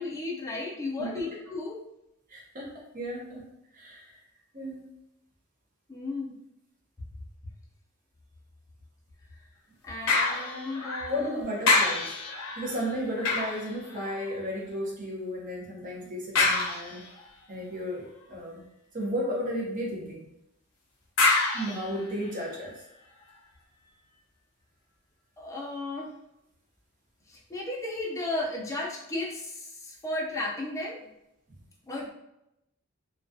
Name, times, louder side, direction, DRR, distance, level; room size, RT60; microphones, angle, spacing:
voice 1, 0.0-1.8 5.9-6.3 9.8-11.4 25.4-26.2 27.3-31.0 31.9-32.1, left 2 dB, 15° left, -3 dB, 0.4 m, -34 dB
voice 2, 2.3-3.4 3.7-4.2 4.5-4.9 11.1-12.1 12.6-17.0 17.5-18.6 18.9-20.2 21.5-22.7, equal, 40° right, -3 dB, 0.7 m, -34 dB
sound 1, 10.1-11.3 11.6-14.5 16.3-17.3 21.2-22.6 23.2-23.3, left 3 dB, 80° left, 0.6 m, -28 dB
2.3 x 2.2 x 2.5 m, 0.83 s
head